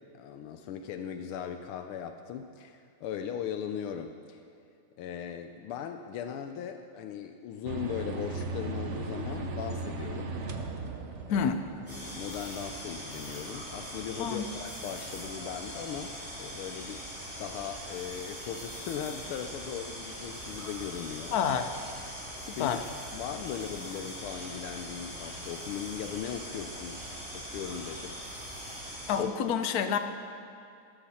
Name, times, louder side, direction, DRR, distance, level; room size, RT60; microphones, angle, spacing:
voice 1, 0.1-4.4 5.0-10.3 11.3-11.5 11.9-17.0 17.4-21.3 22.5-22.8 23.1-27.1 27.3-28.2, left 8 dB, 80° left, 7 dB, 1.5 m, -38 dB
sound 1, 7.6-15.7, right 3 dB, 55° right, 0.8 m, -39 dB
voice 2, 11.3-11.6 14.2-14.5 21.3-21.7 22.6-22.8 29.1-30.0, left 7 dB, 60° left, 8 dB, 1.0 m, -28 dB
sound 2, 11.9-29.2, equal, 15° left, 4.7 m, -41 dB
17.0 x 13.0 x 4.3 m, 2.4 s
omnidirectional pair, 2.4 m